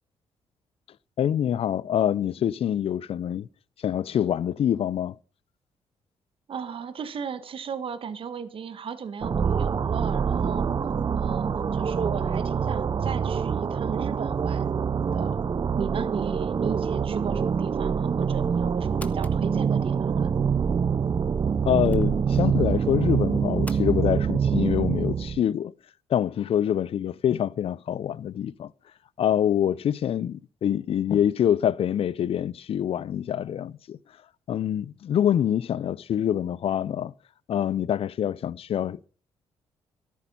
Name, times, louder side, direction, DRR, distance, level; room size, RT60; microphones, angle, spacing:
voice 1, 1.2-3.5 3.8-5.1 21.7-25.7 26.1-28.7 29.2-34.0 34.5-37.1 37.5-39.1, left 10 dB, 65° left, 0.6 m, -25 dB
voice 2, 6.5-10.7 11.1-14.7 15.0-15.4 15.8-20.3, right 6 dB, 55° right, 1.5 m, -35 dB
sound 1, 9.2-25.4, right 6 dB, 40° right, 0.6 m, -25 dB
sound 2, 18.2-23.8, left 2 dB, 15° left, 1.3 m, -50 dB
13.5 x 11.0 x 5.5 m
cardioid pair, 80°, 11 cm